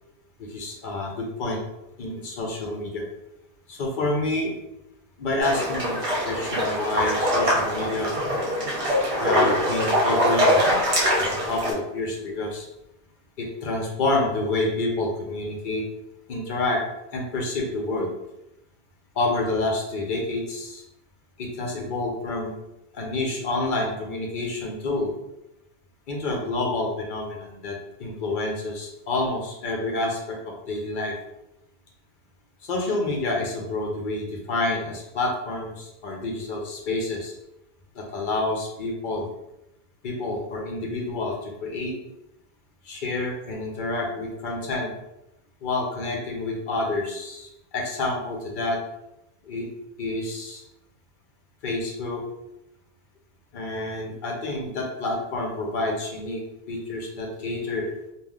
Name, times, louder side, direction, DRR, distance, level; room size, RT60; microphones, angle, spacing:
voice 1, 0.4-1.6 2.0-3.0 3.7-4.6 5.2-6.0 6.2-8.1 9.2-10.7 11.2-12.7 13.4-15.8 16.3-16.8 17.1-18.1 19.2-20.8 21.4-22.5 22.9-25.1 26.1-31.2 32.6-37.3 37.9-39.3 40.0-41.9 42.8-44.9 45.6-48.8 49.4-49.7 50.0-50.6 51.6-52.2 53.5-56.4 56.7-57.9, left 2 dB, 55° left, 0 dB, 0.7 m, -28 dB
sound 1, 5.4-11.7, equal, 35° right, 0.7 m, -23 dB
3.3 x 2.3 x 2.3 m, 0.87 s
omnidirectional pair, 1.2 m